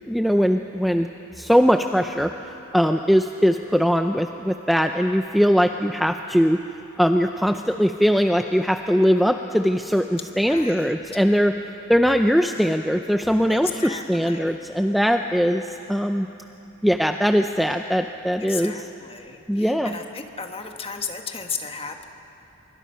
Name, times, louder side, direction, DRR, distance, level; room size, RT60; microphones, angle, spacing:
voice 1, 0.1-1.1 1.4-2.3 2.7-6.6 7.0-11.5 11.9-16.3 16.8-18.7 19.5-19.9, equal, ahead, 6 dB, 0.4 m, -20 dB
voice 2, 10.5-10.9 13.5-14.6 18.4-22.1, left 5 dB, 25° left, 5 dB, 1.3 m, -35 dB
25.0 x 23.5 x 5.6 m, 3.0 s
head